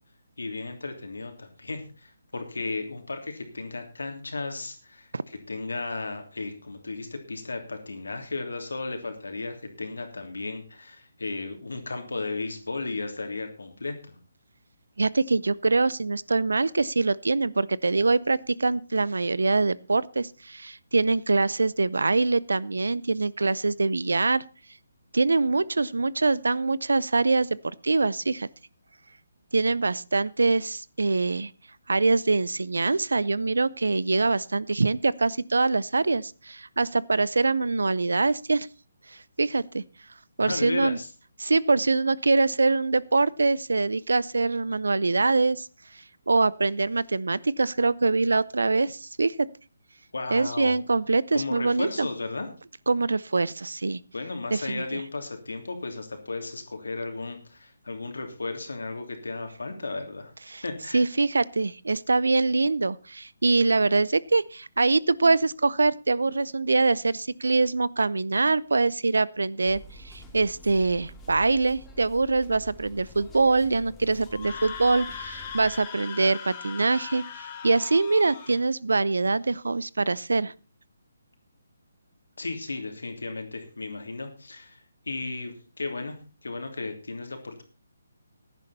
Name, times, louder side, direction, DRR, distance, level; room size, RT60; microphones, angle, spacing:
voice 1, 0.4-14.2 40.4-41.1 50.1-50.8 51.3-52.5 54.1-60.3 60.6-61.0 82.4-84.8 85.1-87.6, left 3 dB, 75° left, 6 dB, 3.0 m, -34 dB
voice 2, 15.0-24.4 25.1-27.5 27.8-28.5 29.5-31.5 31.9-38.7 39.4-39.8 40.4-41.0 41.4-45.7 46.3-49.5 50.3-52.1 52.9-54.0 54.5-55.0 60.5-60.6 60.9-80.5, right 3 dB, 75° right, 22 dB, 0.6 m, -24 dB
sound 1, 69.7-75.8, left 1 dB, 10° left, 2.6 m, -48 dB
Screaming, 74.3-78.6, left 6 dB, 30° left, 3.1 m, -39 dB
15.5 x 10.5 x 4.2 m, 0.33 s
figure-of-eight pair, 145°, 0 cm